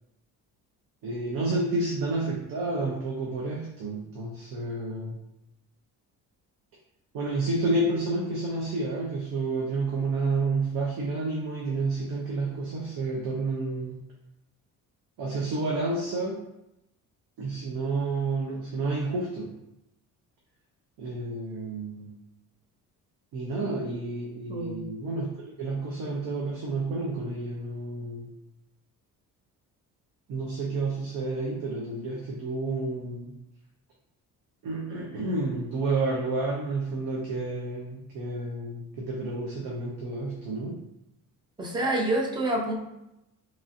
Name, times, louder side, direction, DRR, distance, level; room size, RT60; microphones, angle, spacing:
voice 1, 1.0-5.2 7.1-14.0 15.2-16.4 17.4-19.6 21.0-22.1 23.3-28.3 30.3-33.3 34.6-40.8, right 2 dB, 85° right, -3 dB, 0.6 m, -30 dB
voice 2, 41.6-42.7, right 1 dB, 15° right, -1 dB, 0.3 m, -27 dB
3.0 x 2.6 x 2.4 m, 0.87 s
cardioid pair, 160°, 33 cm